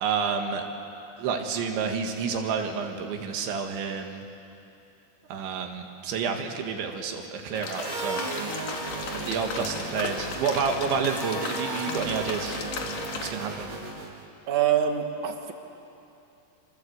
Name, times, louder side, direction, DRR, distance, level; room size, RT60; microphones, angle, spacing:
voice 1, 0.0-0.6 1.2-4.2 5.3-8.2 8.8-12.6 13.2-13.7, right 6 dB, 90° right, 4 dB, 4.2 m, -29 dB
sound 1, 7.5-13.3, left 5 dB, 55° left, 3.0 m, -36 dB
sound 2, 7.7-14.3, right 3 dB, 35° right, 2.2 m, -35 dB
voice 2, 14.5-15.5, right 9 dB, 55° right, 4 dB, 2.4 m, -25 dB
27.0 x 25.5 x 8.1 m, 2.7 s
omnidirectional pair, 5.1 m